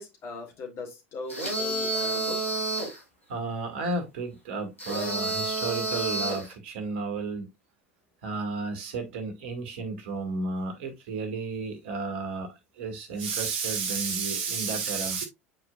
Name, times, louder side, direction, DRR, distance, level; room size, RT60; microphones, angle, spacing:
voice 1, 0.0-2.6, left 3 dB, 40° left, 2.7 m, -40 dB
sound 1, 1.3-3.0 4.8-6.5, right 2 dB, 85° left, 3.0 m, -29 dB
voice 2, 3.3-7.5 8.2-15.3, right 4 dB, 60° right, 1.9 m, -32 dB
8.8 x 4.9 x 2.3 m
figure-of-eight pair, 75°, 7 cm